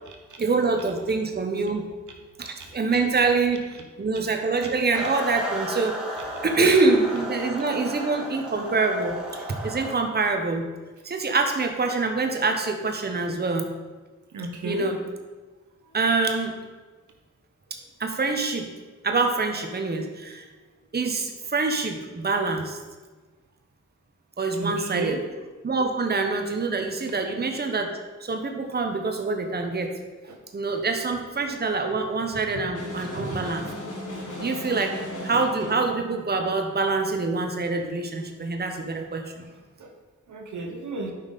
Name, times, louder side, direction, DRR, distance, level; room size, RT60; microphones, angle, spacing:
voice 1, 0.4-1.8 2.4-6.0 6.4-10.7 11.0-13.7 14.6-15.0 15.9-16.6 18.0-18.7 19.0-20.4 20.9-22.8 24.4-25.2 25.6-30.0 30.5-33.6 34.4-35.0 35.2-39.4, right 3 dB, 35° right, 4 dB, 1.0 m, -25 dB
sound 1, 4.9-10.0, right 1 dB, 5° right, 2.6 m, -34 dB
voice 2, 14.3-14.9 24.6-25.2 30.3-30.4 30.7-30.8 33.1-33.4 39.4-39.5 39.8-39.9 40.3-41.1, right 3 dB, 75° right, 2 dB, 1.3 m, -33 dB
sound 2, 32.7-35.9, left 1 dB, 80° left, 1.7 m, -36 dB
8.9 x 5.5 x 4.1 m, 1.3 s
cardioid pair, 45°, 30 cm